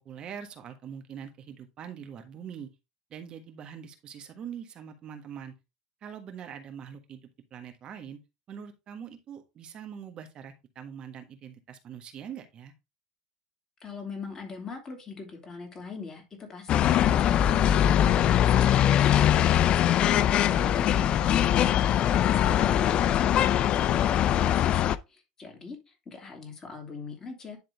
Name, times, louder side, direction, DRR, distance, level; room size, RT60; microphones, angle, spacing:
voice 1, 0.0-2.7 3.1-5.5 6.0-7.2 7.5-8.2 8.5-12.7 20.5-21.1, right 8 dB, 40° right, 7 dB, 1.4 m, -43 dB
voice 2, 13.8-27.6, left 4 dB, 25° left, 2 dB, 2.8 m, -42 dB
sound 1, 16.7-25.0, left 11 dB, 40° left, 0.4 m, -22 dB
10.5 x 3.7 x 3.4 m, 0.25 s
supercardioid pair, 125°, 2 cm